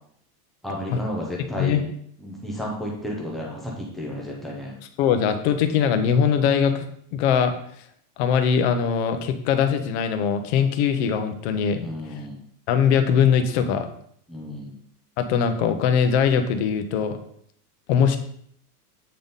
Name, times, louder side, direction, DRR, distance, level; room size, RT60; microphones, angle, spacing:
voice 1, 0.6-1.8 2.2-4.8 11.8-12.4 14.3-14.7, left 1 dB, ahead, -3 dB, 0.5 m, -32 dB
voice 2, 5.0-6.9 7.1-7.6 8.2-11.9 12.7-13.9 15.2-17.2 17.9-18.2, left 7 dB, 45° left, 8 dB, 0.7 m, -21 dB
8.6 x 3.6 x 3.9 m, 0.67 s
supercardioid pair, 165°, 47 cm